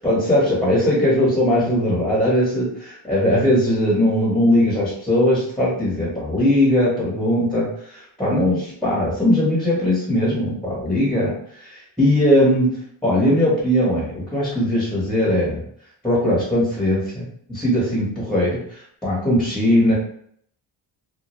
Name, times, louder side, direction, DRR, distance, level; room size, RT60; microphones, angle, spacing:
voice 1, 0.0-11.3 11.6-12.7 13.0-15.6 16.0-19.9, left 1 dB, ahead, -6 dB, 0.9 m, -19 dB
2.2 x 2.1 x 2.9 m, 0.64 s
cardioid pair, 115°, 47 cm